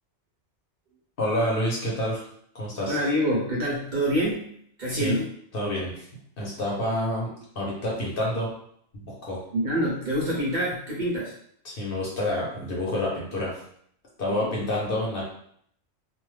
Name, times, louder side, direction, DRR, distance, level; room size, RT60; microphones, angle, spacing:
voice 1, 1.2-2.2 2.5-3.0 5.0-5.2 5.5-6.1 6.4-8.5 9.0-9.4 11.6-13.5 14.2-15.2, left 1 dB, 55° left, -4 dB, 1.0 m, -28 dB
voice 2, 2.9-5.3 9.5-11.4 14.3-14.6, equal, 45° right, -5 dB, 0.8 m, -26 dB
2.5 x 2.3 x 3.1 m, 0.66 s
omnidirectional pair, 1.2 m